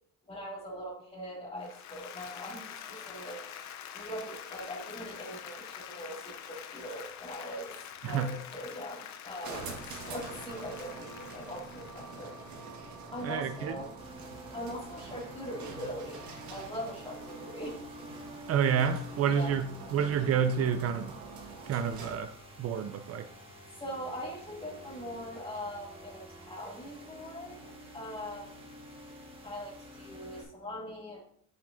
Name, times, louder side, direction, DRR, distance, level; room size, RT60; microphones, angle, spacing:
voice 1, 0.3-3.4 3.9-7.7 8.0-12.3 13.1-13.9 14.5-17.8 19.2-19.5 23.8-28.6 29.4-31.2, equal, 20° left, -3 dB, 2.4 m, -41 dB
Applause, 1.6-12.9, left 9 dB, 60° left, 0.7 m, -46 dB
voice 2, 8.0-8.4 13.2-13.8 18.5-21.2 21.7-23.3, right 7 dB, 50° right, 10 dB, 0.5 m, -29 dB
sound 1, 9.4-22.3, right 3 dB, 65° right, 1.5 m, -46 dB
sound 2, 14.0-30.4, equal, 15° right, 1.7 m, -50 dB
8.0 x 6.4 x 2.6 m, 0.66 s
cardioid pair, 120°, 31 cm